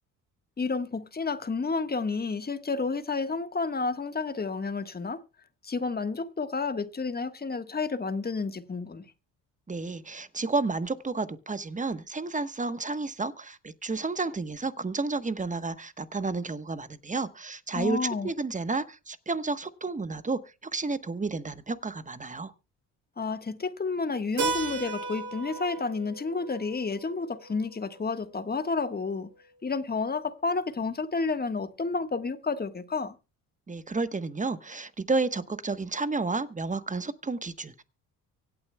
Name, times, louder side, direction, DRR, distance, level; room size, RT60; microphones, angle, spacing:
voice 1, 0.6-5.2 5.6-9.0 17.7-18.3 23.2-29.3 29.6-33.1, left 4 dB, 25° left, 1.4 m, -30 dB
voice 2, 9.7-20.4 20.7-22.5 33.7-37.8, right 3 dB, 20° right, 1.1 m, -31 dB
Keyboard (musical), 24.4-28.8, right 4 dB, 85° right, 7.5 m, -36 dB
24.5 x 8.7 x 2.2 m
supercardioid pair, 70°, 38 cm